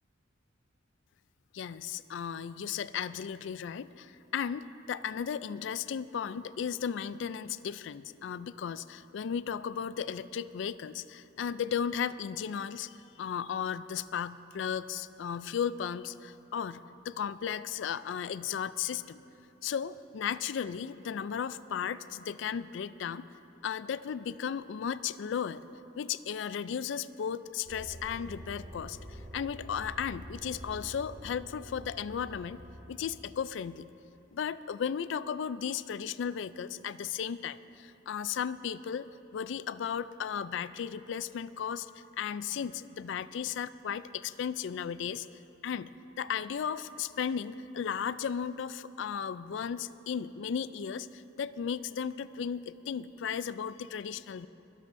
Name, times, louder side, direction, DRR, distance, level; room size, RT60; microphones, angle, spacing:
voice 1, 1.5-19.2 19.6-23.2 23.6-25.6 25.9-32.6 32.9-33.9 34.3-39.1 39.3-41.9 42.2-45.3 45.6-54.5, left 7 dB, 65° left, 16 dB, 0.3 m, -35 dB
sound 1, 27.7-33.2, right 1 dB, 65° right, 2.0 m, -47 dB
25.0 x 11.5 x 2.6 m, 2.9 s
head